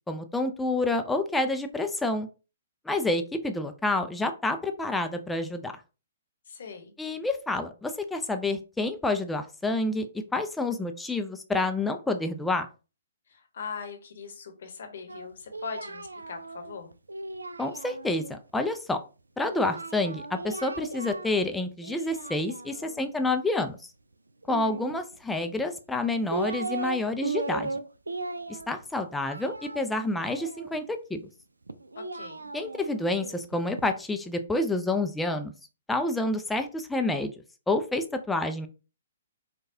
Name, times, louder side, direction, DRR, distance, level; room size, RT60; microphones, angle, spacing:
voice 1, 0.1-2.3 2.9-5.7 7.0-10.1 10.3-12.7 17.6-19.0 19.4-23.8 24.5-27.7 28.5-31.2 32.5-35.5 35.9-37.3 37.7-38.7, left 2 dB, 5° left, 7 dB, 0.4 m, -28 dB
voice 2, 6.5-6.9 13.3-16.9 31.9-32.5, left 6 dB, 60° left, 6 dB, 0.9 m, -40 dB
Singing, 15.1-18.3 19.5-21.5 21.8-23.0 24.4-25.4 26.0-27.0 27.2-30.9 31.7-33.9, right 3 dB, 80° right, 0.3 m, -37 dB
4.5 x 2.3 x 2.7 m, 0.33 s
figure-of-eight pair, 125°, 0 cm